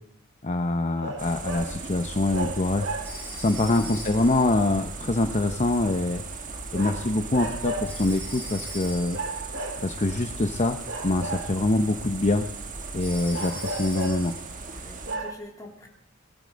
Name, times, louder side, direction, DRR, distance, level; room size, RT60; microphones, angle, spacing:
voice 1, 0.4-6.2 6.7-9.2 9.8-10.8 11.0-12.5 12.9-14.4, left 2 dB, 35° left, 7 dB, 0.8 m, -25 dB
sound 1, 1.0-1.8 2.3-3.4 6.7-8.0 9.1-10.2 10.8-11.9 13.3-14.3 14.7-14.8 15.0-15.3, right 2 dB, 65° right, 2.1 m, -34 dB
sound 2, 1.2-15.2, right 3 dB, 40° right, 1.6 m, -38 dB
Telephone, 3.0-4.5 7.9-9.3 13.0-14.4, equal, 10° right, 7.6 m, -41 dB
voice 2, 14.7-15.9, left 1 dB, 20° left, 0 dB, 3.0 m, -45 dB
20.5 x 12.0 x 5.2 m, 0.72 s
head